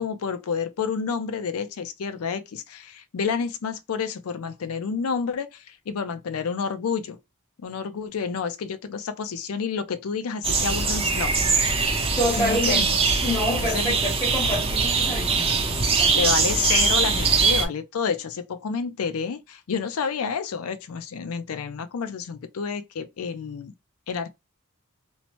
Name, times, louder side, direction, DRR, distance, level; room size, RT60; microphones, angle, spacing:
voice 1, 0.0-7.2 7.6-11.4 12.4-13.0 13.6-14.0 16.1-23.7 24.1-24.3, left 6 dB, 85° left, 0.4 m, -29 dB
sound 1, 10.4-17.6, right 4 dB, 25° right, 0.5 m, -22 dB
voice 2, 12.2-15.5 15.9-16.2, left 1 dB, 15° left, 0.7 m, -27 dB
2.9 x 2.0 x 2.9 m
head